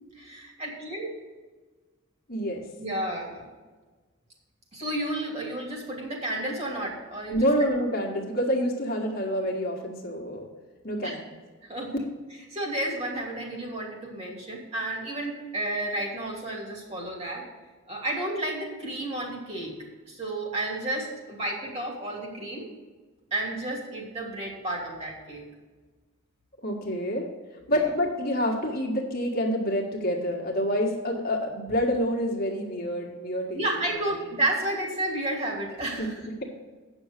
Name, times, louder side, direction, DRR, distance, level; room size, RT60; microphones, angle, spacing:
voice 1, 0.1-1.1 2.8-3.4 4.7-7.5 11.0-11.2 11.6-11.9 12.5-17.4 17.9-19.7 20.1-22.7 23.3-25.4 27.7-27.9 33.5-36.3, right 1 dB, 30° right, -1 dB, 2.6 m, -31 dB
voice 2, 2.3-2.6 7.3-10.5 10.8-11.2 26.6-27.3 27.7-33.6 36.0-36.1, equal, 45° left, 0 dB, 1.6 m, -27 dB
9.0 x 6.3 x 6.6 m, 1.4 s
head